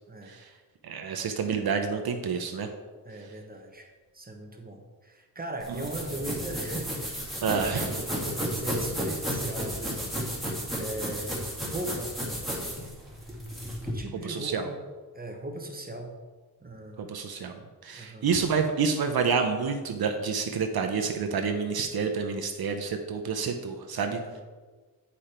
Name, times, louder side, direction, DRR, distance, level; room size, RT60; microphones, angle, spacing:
voice 1, 0.1-0.4 3.0-7.9 8.4-10.2 10.8-11.4 11.7-12.2 13.8-14.8 15.1-16.2 16.6-17.1 17.9-18.3 24.1-24.4, right 1 dB, 20° right, 2 dB, 1.1 m, -38 dB
voice 2, 0.8-2.7 7.4-7.9 14.2-14.7 17.0-24.4, right 5 dB, 65° right, 5 dB, 0.8 m, -29 dB
sound 1, 5.6-13.9, equal, ahead, 2.1 m, -33 dB
8.5 x 5.1 x 4.3 m, 1.4 s
wide cardioid pair, 105°, 40 cm